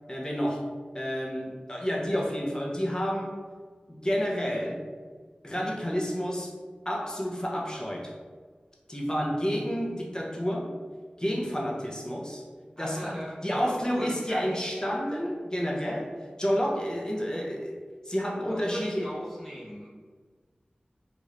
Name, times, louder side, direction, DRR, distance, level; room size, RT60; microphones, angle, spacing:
voice 1, 0.1-0.7 0.9-3.4 3.9-4.8 5.4-6.5 6.8-8.1 8.9-10.7 11.2-12.4 12.8-17.8 18.0-19.1, equal, 25° left, -2 dB, 0.7 m, -30 dB
voice 2, 12.8-14.6 18.5-19.9, equal, ahead, -6 dB, 1.2 m, -39 dB
3.1 x 2.5 x 3.0 m, 1.5 s
wide cardioid pair, 50°, 3 cm